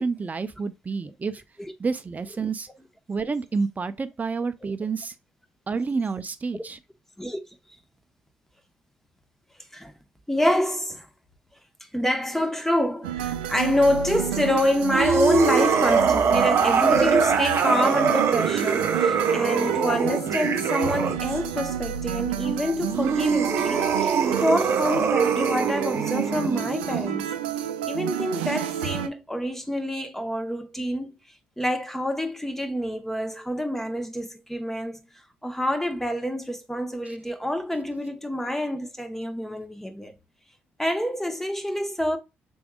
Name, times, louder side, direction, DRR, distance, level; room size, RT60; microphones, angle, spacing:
voice 1, 0.0-1.4 1.8-2.7 3.1-5.1 5.7-6.8 37.1-37.2, right 4 dB, 30° right, 0.6 m, -29 dB
voice 2, 10.3-11.1 11.9-27.4 27.9-31.2 31.6-35.0 35.4-40.1 40.8-42.2, left 1 dB, 5° left, 1.1 m, -27 dB
sound 1, 13.0-29.1, right 11 dB, 90° right, 0.4 m, -30 dB
sound 2, 14.9-21.4 22.8-27.2, right 6 dB, 55° right, 0.9 m, -23 dB
6.1 x 3.4 x 2.4 m
hypercardioid pair, 50°, 5 cm